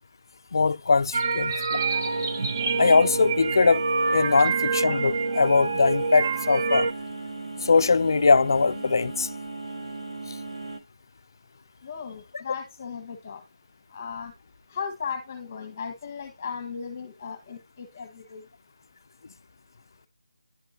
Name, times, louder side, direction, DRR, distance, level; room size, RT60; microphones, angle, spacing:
voice 1, 0.5-1.8 2.8-3.9 4.1-6.9 7.6-9.3 10.3-10.4, left 4 dB, 40° left, 0.4 m, -21 dB
sound 1, 1.1-6.9, right 4 dB, 30° right, 0.6 m, -26 dB
sound 2, 1.7-10.8, right 3 dB, 85° right, 1.4 m, -37 dB
voice 2, 11.8-13.4 13.9-14.3 14.7-18.4, left 6 dB, 20° left, 1.2 m, -36 dB
10.5 x 3.7 x 2.7 m
figure-of-eight pair, 170°, 3 cm